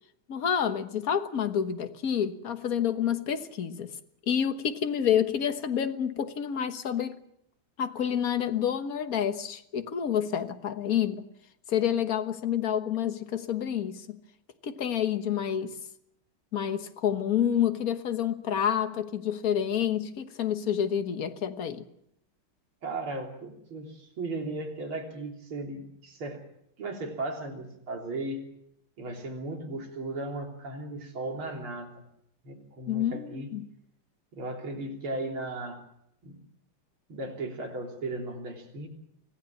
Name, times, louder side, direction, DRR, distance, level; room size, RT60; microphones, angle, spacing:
voice 1, 0.3-3.9 4.3-7.2 7.8-11.2 11.7-14.2 14.6-15.8 16.5-21.9 32.9-33.7, left 9 dB, 45° left, 1.6 m, -28 dB
voice 2, 22.8-26.4 26.8-28.5 29.0-31.9 32.4-33.5 34.3-35.8 36.2-36.4 37.1-38.9, right 2 dB, 80° right, 4.2 m, -36 dB
25.5 x 16.5 x 7.2 m
omnidirectional pair, 2.3 m